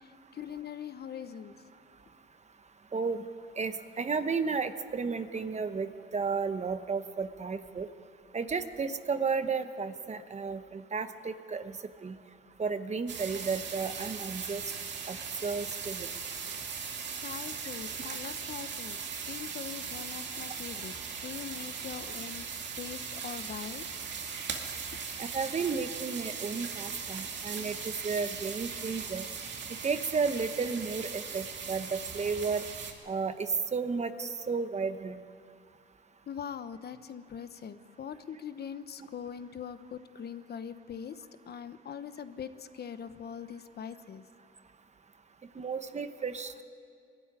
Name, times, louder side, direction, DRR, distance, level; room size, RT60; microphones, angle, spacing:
voice 1, 0.0-1.5 16.7-16.9 17.2-20.9 21.2-22.5 22.8-23.9 36.3-44.2, left 8 dB, 55° left, 12 dB, 1.0 m, -42 dB
voice 2, 2.9-3.2 3.6-7.9 8.3-12.2 12.6-14.6 15.1-16.1 25.2-27.8 28.0-29.3 29.8-32.6 33.1-35.2 45.6-46.5, right 5 dB, 35° right, 10 dB, 1.1 m, -33 dB
sound 1, 13.1-32.9, right 6 dB, 65° right, 2.4 m, -39 dB
22.0 x 13.0 x 9.8 m, 2.3 s
cardioid pair, 90°, 20 cm